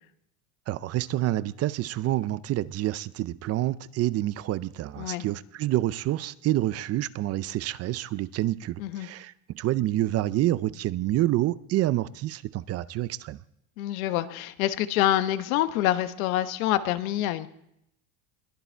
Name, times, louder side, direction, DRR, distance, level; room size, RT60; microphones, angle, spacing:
voice 1, 0.7-13.4, right 15 dB, 35° right, 0.5 m, -28 dB
voice 2, 13.8-17.5, left 13 dB, 80° left, 1.2 m, -26 dB
22.0 x 14.0 x 4.5 m
supercardioid pair, 120°, 41 cm